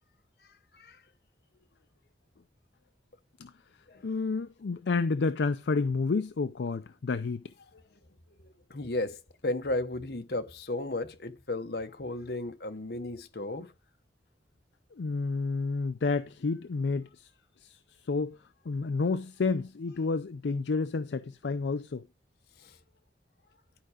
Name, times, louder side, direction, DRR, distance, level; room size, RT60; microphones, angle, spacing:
voice 1, 4.0-7.4 14.9-17.3 17.6-17.8 18.1-18.4 18.7-22.0, left 4 dB, 80° left, 0.5 m, -30 dB
voice 2, 8.4-13.7 22.6-22.7, left 2 dB, 65° left, 1.1 m, -34 dB
11.5 x 4.8 x 4.9 m
head